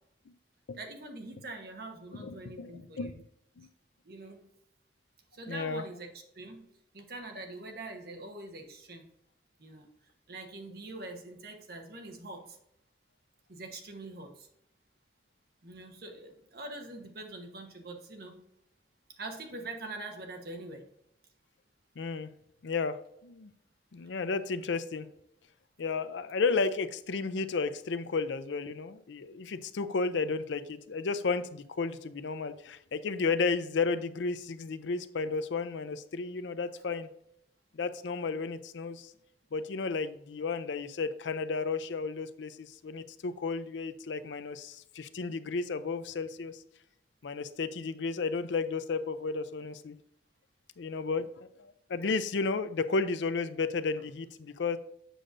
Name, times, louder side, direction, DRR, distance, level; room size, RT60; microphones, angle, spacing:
voice 1, 0.8-3.1 4.0-4.4 5.3-6.6 6.9-9.0 9.6-9.9 10.3-12.6 13.5-14.5 15.6-18.4 19.2-20.8, right 2 dB, 55° right, 4 dB, 1.1 m, -44 dB
voice 2, 2.2-3.2 3.6-3.7 5.5-5.8 22.0-22.3 22.6-23.5 23.9-25.1 25.8-37.1 37.7-39.1 39.5-46.6 47.2-50.0 50.8-54.8, left 4 dB, 80° left, 12 dB, 0.5 m, -33 dB
7.7 x 6.4 x 2.6 m, 0.77 s
head